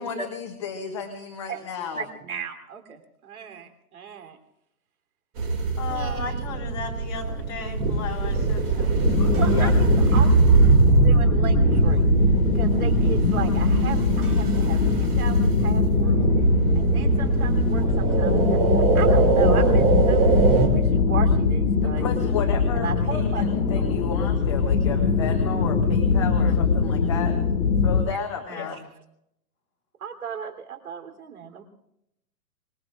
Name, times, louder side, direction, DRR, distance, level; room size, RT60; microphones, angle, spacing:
voice 1, 0.0-2.0 9.2-9.7 21.8-27.4 27.8-28.8, left 6 dB, 20° left, 4 dB, 0.8 m, -33 dB
voice 2, 1.9-4.4 5.9-6.5 9.3-10.3 10.9-12.1 12.5-16.2 16.7-20.3 20.6-22.4 22.7-23.4 23.9-24.0 28.0-28.2 28.5-28.8 30.0-31.6, right 7 dB, 65° right, 6 dB, 3.4 m, -36 dB
sound 1, 5.4-20.7, right 5 dB, 20° right, 2.4 m, -22 dB
voice 3, 5.8-8.9 26.4-26.5 28.5-28.8, left 5 dB, 55° left, -1 dB, 5.1 m, -35 dB
sound 2, 9.0-28.0, left 4 dB, 90° left, 1.7 m, -22 dB
25.5 x 21.0 x 2.5 m, 0.81 s
hypercardioid pair, 170°, 47 cm